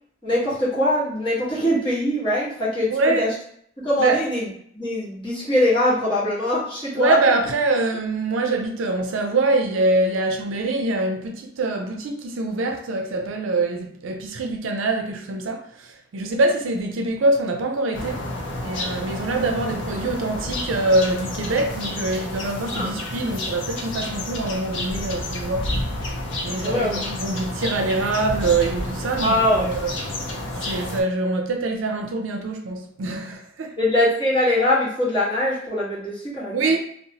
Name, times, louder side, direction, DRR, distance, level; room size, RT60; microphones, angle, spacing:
voice 1, 0.2-3.3 3.8-4.5 4.7-7.2 22.7-22.9 26.6-27.0 29.2-29.7 33.8-36.7, left 1 dB, 25° left, 1.2 m, -22 dB
voice 2, 2.9-3.3 4.0-4.2 7.0-18.2 18.6-25.7 26.4-29.9 30.6-33.8 36.5-36.8, right 2 dB, 85° right, 0.4 m, -24 dB
sound 1, 17.9-31.0, left 1 dB, 65° left, 0.5 m, -30 dB
2.8 x 2.0 x 2.7 m
head